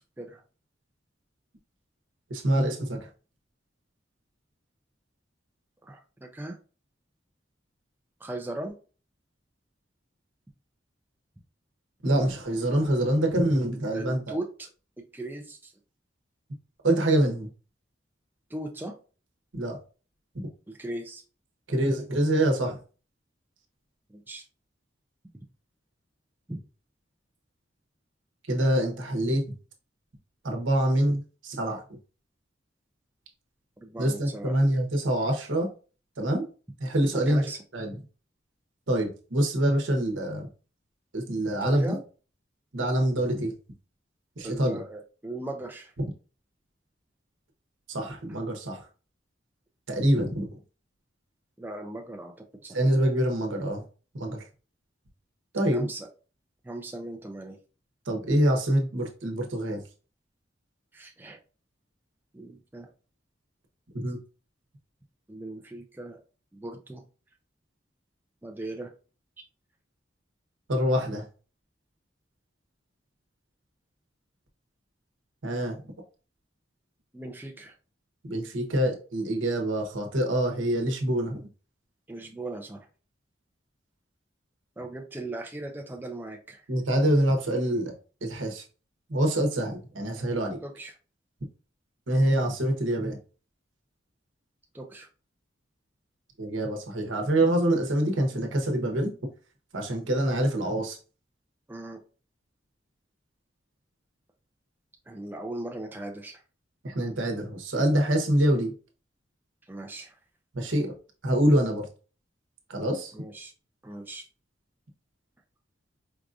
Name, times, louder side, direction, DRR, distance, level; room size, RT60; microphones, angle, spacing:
voice 1, 2.3-3.1 12.0-14.3 16.8-17.5 19.5-19.8 21.7-22.8 28.5-29.5 30.4-31.8 34.0-35.7 36.2-36.5 36.8-38.0 38.9-40.5 41.1-42.0 42.7-43.5 44.4-44.8 46.0-46.1 47.9-48.9 49.9-50.5 52.7-53.8 54.1-54.4 55.5-55.9 58.1-59.8 63.9-64.2 70.7-71.3 75.4-75.8 78.2-81.5 86.7-87.9 88.2-88.6 89.1-90.6 92.1-93.2 96.4-99.1 99.7-101.0 106.8-108.7 110.5-110.9 111.2-111.9 112.7-113.1, right 1 dB, 85° right, 0.9 m, -25 dB
voice 2, 5.8-6.6 8.2-8.7 13.9-14.7 15.1-15.7 18.5-18.9 20.7-21.2 24.1-24.5 26.5-26.6 33.8-34.6 37.3-37.6 41.6-42.0 44.4-45.9 51.6-52.8 55.7-56.1 56.6-57.6 60.9-61.4 62.3-62.9 65.3-66.2 66.5-67.0 68.4-68.9 77.1-77.7 82.1-82.9 84.8-86.6 90.6-90.9 94.7-95.1 101.7-102.0 105.1-106.4 109.7-110.2 113.1-113.5 113.8-114.2, right 2 dB, 10° right, 0.4 m, -38 dB
4.6 x 2.5 x 2.4 m
head